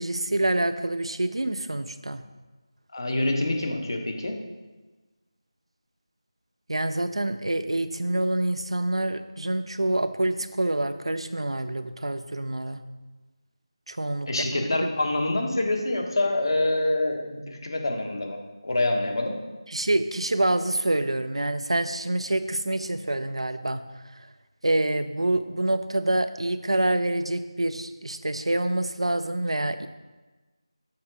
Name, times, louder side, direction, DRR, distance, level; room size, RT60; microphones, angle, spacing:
voice 1, 0.0-2.2 6.7-12.8 13.9-14.6 19.7-23.8 24.6-29.9, right 1 dB, 80° right, 10 dB, 0.5 m, -26 dB
voice 2, 2.9-4.3 14.3-19.4, left 2 dB, 50° left, 2 dB, 1.2 m, -26 dB
7.1 x 3.7 x 4.9 m, 1.2 s
figure-of-eight pair, 165°, 3 cm